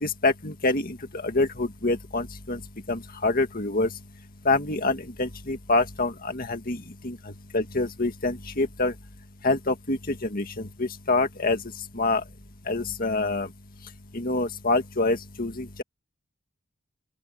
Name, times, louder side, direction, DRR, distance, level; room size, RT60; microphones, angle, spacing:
voice 1, 0.0-1.0 1.2-2.6 2.9-3.9 4.5-7.2 7.5-8.9 9.4-11.6 12.0-12.2 12.7-13.5 14.1-15.8, left 2 dB, 45° left, 2.1 m, -26 dB
open air
head